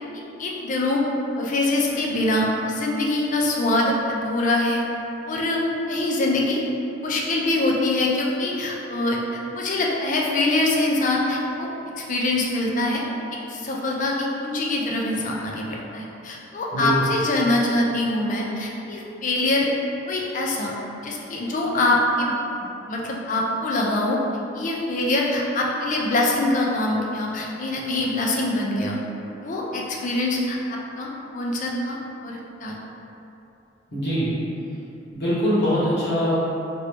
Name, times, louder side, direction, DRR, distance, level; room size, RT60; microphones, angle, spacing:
voice 1, 0.1-1.0 1.4-4.8 5.3-5.6 5.9-6.6 7.0-11.7 12.0-13.0 13.5-19.7 20.1-20.7 21.0-22.3 22.9-24.2 24.5-29.0 29.4-32.7, left 2 dB, 40° left, -2 dB, 0.4 m, -24 dB
voice 2, 33.9-34.3 35.1-36.4, equal, 60° left, -11 dB, 1.3 m, -22 dB
2.9 x 2.7 x 3.2 m, 2.9 s
head